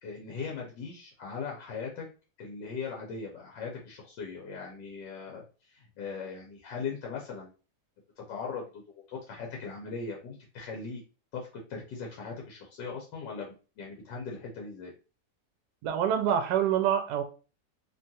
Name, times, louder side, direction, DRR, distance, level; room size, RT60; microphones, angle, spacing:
voice 1, 0.0-2.1 2.4-7.5 8.3-11.0 11.3-14.9, left 5 dB, 85° left, -1 dB, 1.4 m, -39 dB
voice 2, 15.8-17.2, right 9 dB, 75° right, 7 dB, 1.1 m, -26 dB
3.2 x 2.3 x 2.7 m, 0.34 s
omnidirectional pair, 1.8 m